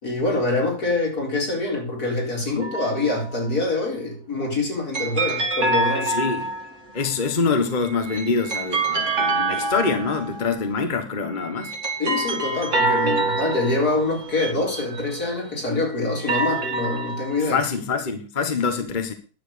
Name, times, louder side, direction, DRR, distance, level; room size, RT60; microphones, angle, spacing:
voice 1, 0.0-6.1 12.0-17.6 18.8-18.9, left 2 dB, 75° left, 4.6 m, -25 dB
sound 1, 2.6-3.4 4.9-6.9 7.8-10.6 11.4-15.4 16.0-17.6, right 3 dB, 50° right, 2.7 m, -26 dB
voice 2, 6.1-6.5 6.9-11.7 17.5-19.1, left 4 dB, 30° left, 1.4 m, -25 dB
10.5 x 7.5 x 6.7 m
omnidirectional pair, 1.6 m